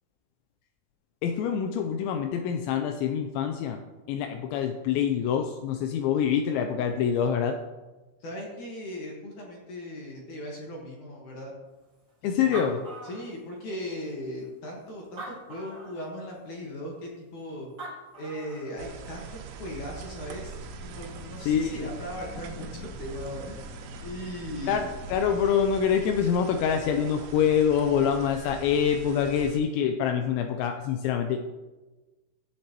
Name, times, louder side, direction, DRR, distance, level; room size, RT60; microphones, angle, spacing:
voice 1, 1.2-3.8 4.1-7.6 12.2-12.8 21.5-21.9 24.7-31.5, left 8 dB, 85° left, 6 dB, 2.7 m, -25 dB
voice 2, 8.2-11.5 12.4-17.7 18.2-20.6 20.9-22.7 23.0-23.7 24.0-24.8, equal, 65° left, -2 dB, 1.9 m, -38 dB
Animal, 12.1-12.2 12.3-13.8 14.4-14.5 15.0-16.0 17.5-17.6 17.8-18.7, right 2 dB, 70° right, 0.7 m, -41 dB
sound 1, 18.8-29.6, right 6 dB, 90° right, 3.4 m, -43 dB
sound 2, 19.7-26.5, left 3 dB, 45° left, 2.6 m, -46 dB
14.0 x 8.6 x 3.0 m, 1.2 s
omnidirectional pair, 5.7 m